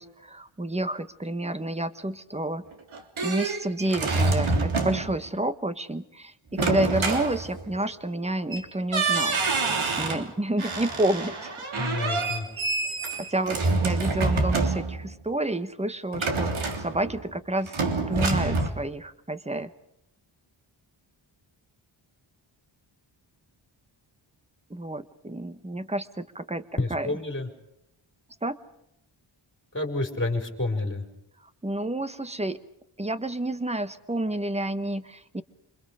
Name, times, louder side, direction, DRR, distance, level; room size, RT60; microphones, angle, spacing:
voice 1, 0.0-2.6 3.2-9.4 9.8-11.5 13.2-13.6 13.8-19.7 24.7-26.6 26.9-27.1 28.4-28.6 31.6-32.6 33.0-35.4, right 1 dB, 15° right, 11 dB, 1.3 m, -29 dB
sound 1, 2.7-5.2 6.5-7.9 8.5-8.7 8.9-10.3 10.6-15.1 16.1-17.3 17.7-18.7, right 3 dB, 80° right, 3.5 m, -27 dB
voice 2, 11.8-12.4 26.8-27.5 29.7-31.0, left 2 dB, 25° left, 4 dB, 4.8 m, -29 dB
28.0 x 27.0 x 5.0 m, 0.83 s
wide cardioid pair, 135°, 48 cm